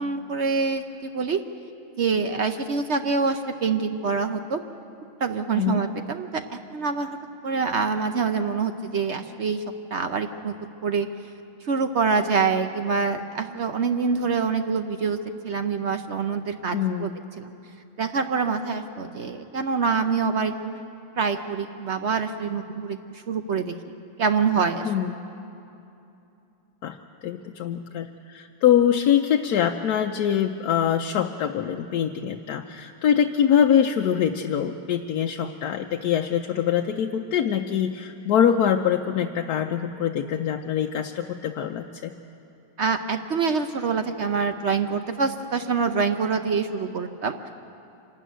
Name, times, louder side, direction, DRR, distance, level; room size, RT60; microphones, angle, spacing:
voice 1, 0.0-1.4 2.0-4.6 5.2-7.2 7.4-9.6 9.9-10.5 10.8-11.1 11.6-15.2 15.4-17.5 18.0-20.8 21.2-23.7 24.2-24.9 42.8-47.5, right 5 dB, 55° right, 7 dB, 0.7 m, -25 dB
voice 2, 16.7-17.1 24.8-25.2 26.8-27.0 27.2-42.1, left 9 dB, 70° left, 4 dB, 1.1 m, -24 dB
26.0 x 12.5 x 9.2 m, 2.8 s
omnidirectional pair, 1.9 m